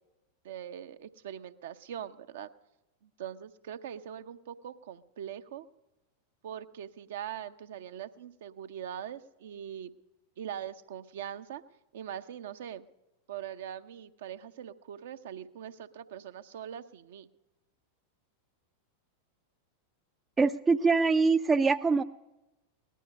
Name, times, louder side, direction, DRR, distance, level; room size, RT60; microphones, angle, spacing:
voice 1, 0.4-2.5 3.0-5.7 6.4-9.9 10.4-11.6 11.9-12.8 13.3-17.3, right 9 dB, 55° right, 10 dB, 0.7 m, -42 dB
voice 2, 20.4-22.0, right 4 dB, 15° right, 11 dB, 0.4 m, -24 dB
18.5 x 12.0 x 5.4 m, 1.0 s
figure-of-eight pair, 90°, 0 cm